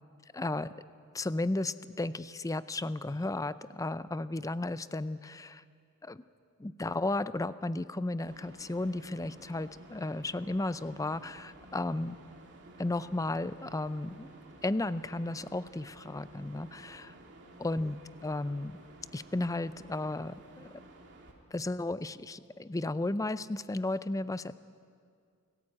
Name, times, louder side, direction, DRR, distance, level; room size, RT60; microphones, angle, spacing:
voice 1, 0.3-0.7 1.1-5.6 6.0-6.2 6.6-12.2 12.8-14.3 14.6-17.1 17.6-18.8 19.1-20.7 21.5-24.6, left 2 dB, 15° left, 15 dB, 0.5 m, -34 dB
sound 1, 8.3-21.3, right 2 dB, 55° right, 2.7 m, -53 dB
29.0 x 14.0 x 8.7 m, 2.3 s
head